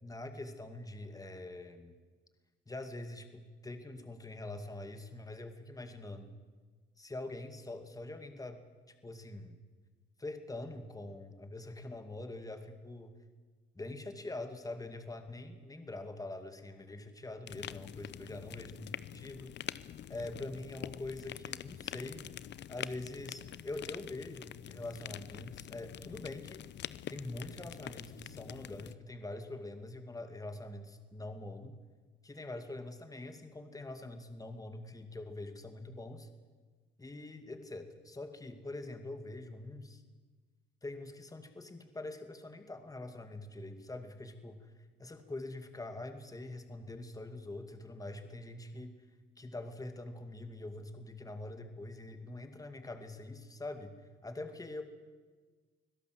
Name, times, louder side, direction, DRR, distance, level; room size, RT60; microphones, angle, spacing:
voice 1, 0.0-1.9 2.7-6.3 7.0-8.6 9.0-9.6 10.2-13.2 13.7-19.5 20.1-22.3 22.7-26.6 27.1-31.8 32.2-36.3 37.0-40.0 40.8-44.7 45.0-48.9 49.4-53.9 54.2-54.8, left 2 dB, 15° left, 7 dB, 2.4 m, -44 dB
sound 1, 17.5-28.9, left 11 dB, 65° left, 0.7 m, -45 dB
25.0 x 17.0 x 7.9 m, 1.4 s
cardioid pair, 90°, 20 cm